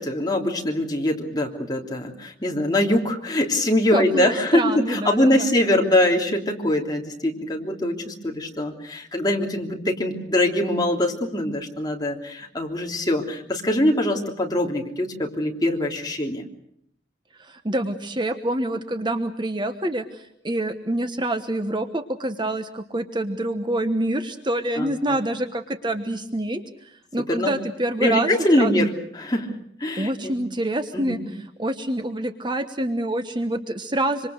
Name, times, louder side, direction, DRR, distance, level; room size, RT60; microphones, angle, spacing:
voice 1, 0.0-16.4 24.8-25.2 27.3-27.5 28.0-29.5 29.8-30.4 30.9-31.2, left 1 dB, 20° left, 1 dB, 3.2 m, -23 dB
voice 2, 3.9-5.5 17.4-28.7 30.0-31.2 31.6-34.3, right 1 dB, 25° right, 8 dB, 1.2 m, -26 dB
26.0 x 25.5 x 6.5 m, 0.69 s
head